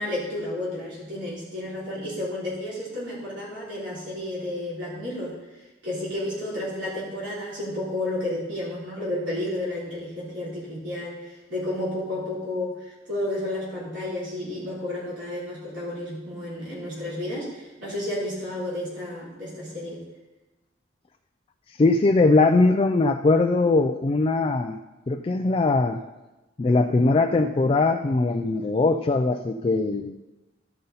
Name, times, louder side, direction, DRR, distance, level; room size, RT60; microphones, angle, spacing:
voice 1, 0.0-5.3 5.8-20.0, left 1 dB, 70° right, -8 dB, 3.4 m, -31 dB
voice 2, 21.7-24.8 25.1-26.0 26.6-30.2, left 3 dB, 30° left, 5 dB, 0.3 m, -21 dB
13.0 x 5.5 x 4.0 m, 1.1 s
head